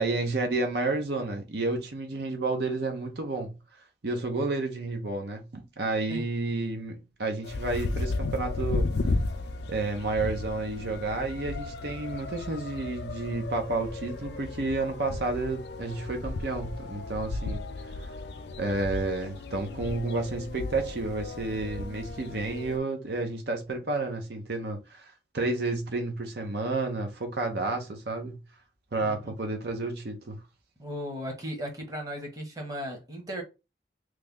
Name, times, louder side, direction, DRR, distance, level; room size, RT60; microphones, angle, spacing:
voice 1, 0.0-3.5 4.0-8.9 9.7-17.6 18.0-18.1 18.6-28.3 28.9-30.4, right 3 dB, 70° right, 0.7 m, -31 dB
sound 1, 7.4-22.8, left 3 dB, 75° left, 0.4 m, -34 dB
voice 2, 29.0-29.3 30.8-33.4, equal, 20° right, 0.9 m, -36 dB
3.2 x 2.1 x 3.6 m
head